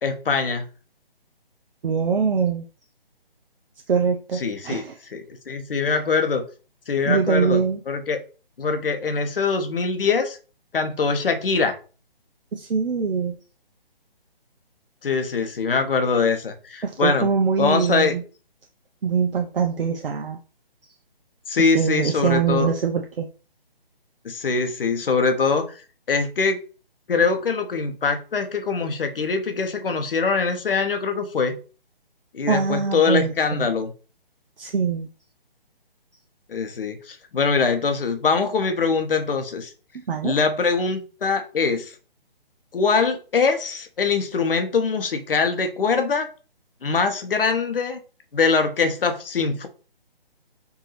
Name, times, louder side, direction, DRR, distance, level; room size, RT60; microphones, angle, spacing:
voice 1, 0.0-0.6 4.4-4.8 5.1-6.4 6.9-7.6 7.9-8.2 8.6-10.4 10.7-11.8 15.0-17.3 17.6-18.1 21.5-22.7 24.2-25.7 26.1-26.6 27.1-31.6 32.3-33.9 36.5-39.7 40.2-41.9 42.7-46.3 46.8-48.0 48.3-49.7, left 5 dB, 65° left, 7 dB, 0.9 m, -23 dB
voice 2, 1.8-2.7 3.9-5.0 5.9-6.0 7.1-7.8 12.5-13.4 16.8-18.2 19.0-20.4 21.6-23.3 32.5-33.7 34.6-35.1 40.1-40.3, right 6 dB, 65° right, 3 dB, 0.6 m, -23 dB
4.6 x 2.7 x 3.1 m, 0.36 s
figure-of-eight pair, 150°, 30 cm